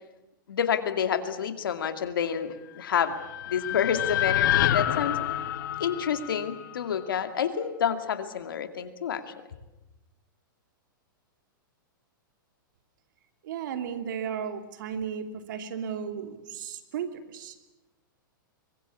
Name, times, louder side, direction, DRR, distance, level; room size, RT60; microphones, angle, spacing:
voice 1, 0.5-3.1 3.5-5.2 5.8-9.3, left 8 dB, 80° left, 8 dB, 2.4 m, -28 dB
sound 1, 2.8-7.1, left 12 dB, 60° left, 1.6 m, -28 dB
voice 2, 13.4-17.5, right 7 dB, 65° right, 7 dB, 2.8 m, -34 dB
24.0 x 21.5 x 8.5 m, 1.0 s
hypercardioid pair, 120°, 11 cm